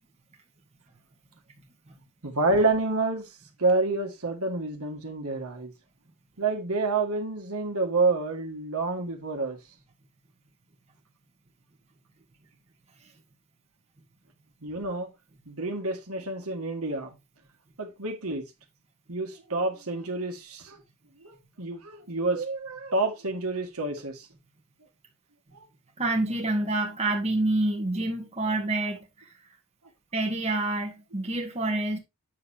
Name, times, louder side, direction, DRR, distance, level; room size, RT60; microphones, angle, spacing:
voice 1, 2.2-3.3 3.6-5.7 6.4-9.6 14.6-15.1 15.5-17.1 17.8-18.4 19.1-20.8 21.2-24.3, right 3 dB, 70° right, 1.9 m, -28 dB
voice 2, 26.0-29.3 30.1-32.0, right 2 dB, 30° right, 1.5 m, -27 dB
8.7 x 6.6 x 2.8 m
head